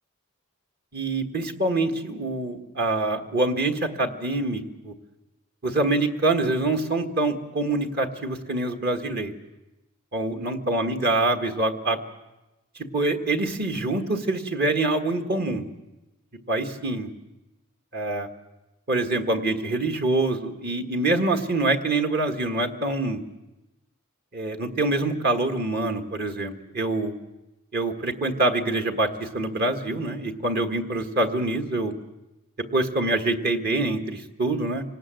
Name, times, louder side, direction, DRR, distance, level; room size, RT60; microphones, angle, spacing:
voice 1, 0.9-4.9 5.6-9.3 10.1-12.0 12.9-15.6 16.5-17.1 17.9-18.3 18.9-23.2 24.3-27.1 27.7-31.9 32.7-34.8, right 2 dB, 45° right, 4 dB, 1.7 m, -25 dB
25.5 x 19.0 x 7.7 m, 1.0 s
head